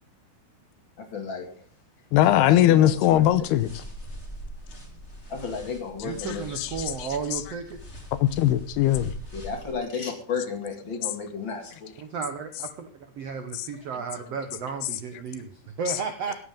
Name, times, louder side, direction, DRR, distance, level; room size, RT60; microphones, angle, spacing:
voice 1, 1.0-1.5 2.2-3.2 5.3-6.4 9.3-11.9, left 5 dB, 35° left, 5 dB, 2.4 m, -33 dB
voice 2, 2.1-3.8 6.6-6.7 7.0-7.4 8.2-9.1 13.5-13.7, left 12 dB, 85° left, 14 dB, 2.8 m, -20 dB
sound 1, 2.8-9.8, left 1 dB, 20° left, 2.7 m, -42 dB
voice 3, 6.0-7.8 12.0-12.9 13.2-16.3, right 5 dB, 80° right, 7 dB, 1.4 m, -33 dB
16.5 x 13.0 x 3.7 m, 0.44 s
omnidirectional pair, 4.7 m